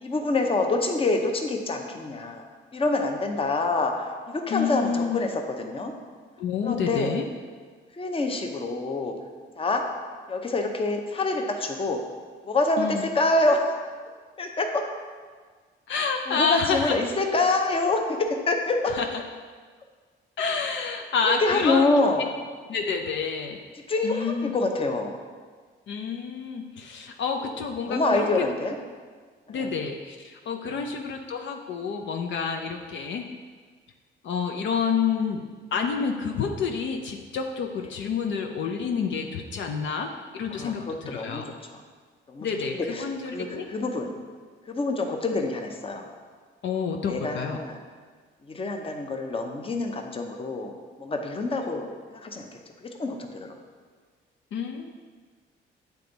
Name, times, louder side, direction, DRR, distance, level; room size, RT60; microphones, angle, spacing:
voice 1, 0.0-2.4 2.7-5.3 5.6-5.9 6.6-7.2 7.9-9.1 9.6-9.8 10.3-12.0 12.5-13.7 14.4-14.8 16.3-18.9 21.2-22.3 23.9-25.1 27.4-27.5 27.9-28.8 29.5-29.7 30.7-30.9 40.5-41.8 42.3-42.5 42.7-44.1 44.7-46.1 47.1-47.8 48.4-50.7 51.0-52.5 52.8-53.5, left 2 dB, 30° left, 3 dB, 0.7 m, -26 dB
voice 2, 4.5-5.2 6.4-7.2 12.8-13.1 15.9-17.0 18.9-19.0 20.4-21.9 22.7-23.6 24.0-24.5 25.9-28.5 29.5-33.3 34.2-35.4 35.7-41.4 42.4-43.7 46.6-47.6 54.5-54.9, left 6 dB, 65° left, 3 dB, 0.6 m, -28 dB
8.2 x 3.5 x 3.9 m, 1.6 s
cardioid pair, 90°, 20 cm